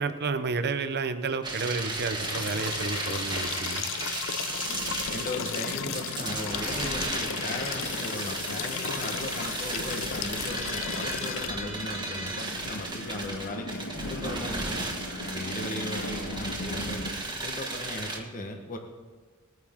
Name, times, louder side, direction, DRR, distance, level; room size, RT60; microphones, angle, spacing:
voice 1, 0.0-3.9, right 4 dB, 50° right, 10 dB, 0.8 m, -31 dB
sound 1, 1.4-18.2, right 2 dB, 20° right, 1.7 m, -35 dB
sound 2, 2.2-11.5, left 9 dB, 60° left, 0.5 m, -35 dB
sound 3, 4.6-17.1, left 1 dB, 75° left, 1.5 m, -40 dB
voice 2, 5.1-14.9 15.3-17.1 17.4-18.8, left 1 dB, 40° left, 3 dB, 1.2 m, -37 dB
20.5 x 9.3 x 3.7 m, 1.4 s
head